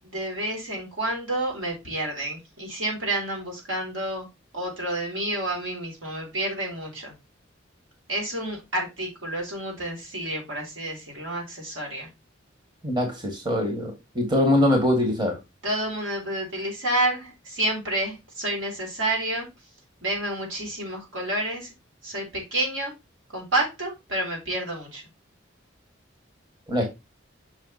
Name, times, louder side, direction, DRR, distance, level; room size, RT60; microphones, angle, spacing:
voice 1, 0.0-4.3 4.5-7.1 8.1-12.1 15.6-19.5 20.0-21.7 22.0-22.9 23.3-25.0, right 1 dB, 80° right, 4.1 m, -29 dB
voice 2, 12.8-15.4 26.7-26.8, left 1 dB, 20° right, 1.7 m, -23 dB
6.5 x 5.7 x 4.1 m
head